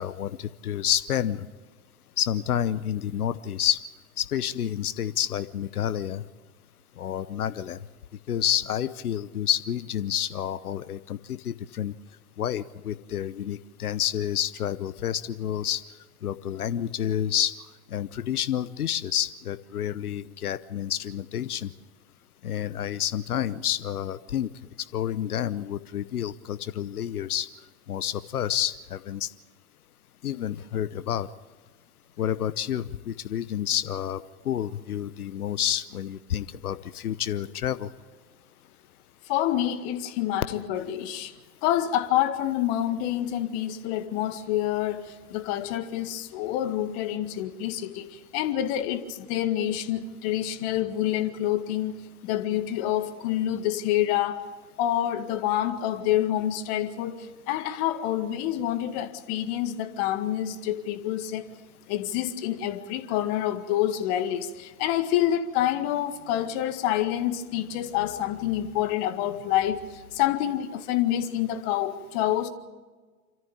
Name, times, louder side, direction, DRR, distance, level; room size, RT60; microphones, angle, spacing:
voice 1, 0.0-1.5 2.2-3.8 4.3-6.2 7.0-7.8 8.3-11.9 12.4-15.8 16.2-17.5 17.9-21.7 22.4-24.5 24.9-27.5 27.9-29.3 30.2-31.3 32.2-37.9, left 10 dB, 80° left, 15 dB, 0.9 m, -29 dB
voice 2, 39.3-41.3 41.6-51.9 52.2-54.4 54.8-61.5 61.9-72.5, left 12 dB, 45° left, 9 dB, 1.9 m, -27 dB
27.0 x 14.0 x 8.8 m, 1.4 s
hypercardioid pair, 100°, 44 cm